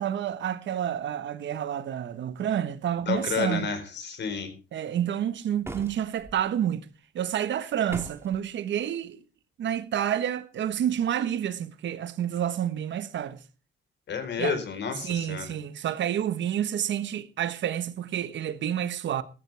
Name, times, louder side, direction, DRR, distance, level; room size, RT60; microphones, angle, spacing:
voice 1, 0.0-3.7 4.7-6.9 7.1-9.2 9.6-13.4 14.4-14.6 15.0-19.2, right 10 dB, 70° right, 1.3 m, -29 dB
voice 2, 3.1-4.5 14.1-15.5, left 6 dB, 65° left, 4.3 m, -30 dB
sound 1, 5.6-6.4 7.9-8.4, right 2 dB, 15° right, 2.3 m, -39 dB
17.0 x 13.0 x 3.4 m
cardioid pair, 90°, 20 cm